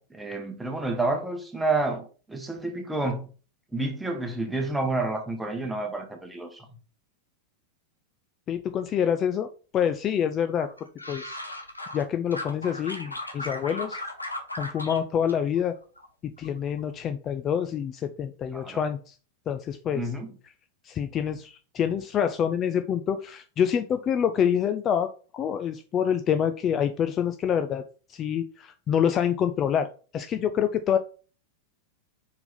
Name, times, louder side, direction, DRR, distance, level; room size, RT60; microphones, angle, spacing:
voice 1, 0.0-3.3 3.7-6.7 18.5-18.8 19.9-20.3, right 2 dB, 5° right, 1.2 m, -29 dB
voice 2, 8.5-10.7 11.1-11.4 11.9-14.0 14.6-15.7 16.2-19.2 19.5-20.0 20.8-27.8 28.1-31.0, left 8 dB, 30° left, 0.4 m, -26 dB
sound 1, 10.6-12.0 12.3-15.0 15.3-16.1 16.4-16.8, left 1 dB, 85° left, 1.0 m, -37 dB
5.1 x 4.5 x 4.0 m
figure-of-eight pair, 90°, 0 cm